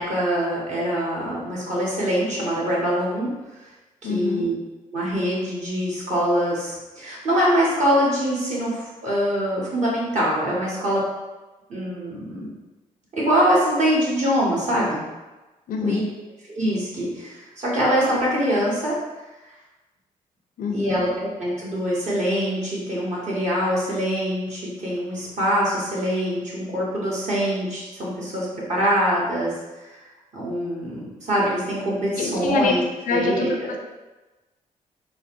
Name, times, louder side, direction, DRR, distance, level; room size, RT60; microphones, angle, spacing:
voice 1, 0.0-3.3 3.6-3.7 4.0-4.5 4.9-11.1 11.7-12.5 13.1-15.0 15.8-16.0 16.5-18.9 20.7-29.5 30.3-32.8 33.1-33.7, equal, 50° right, -6 dB, 1.4 m, -24 dB
voice 2, 4.0-4.5 15.7-16.0 20.6-21.0 32.2-32.7 33.1-33.8, left 4 dB, 65° left, 3 dB, 0.5 m, -25 dB
3.9 x 2.0 x 2.5 m, 1.1 s
supercardioid pair, 55°, 15 cm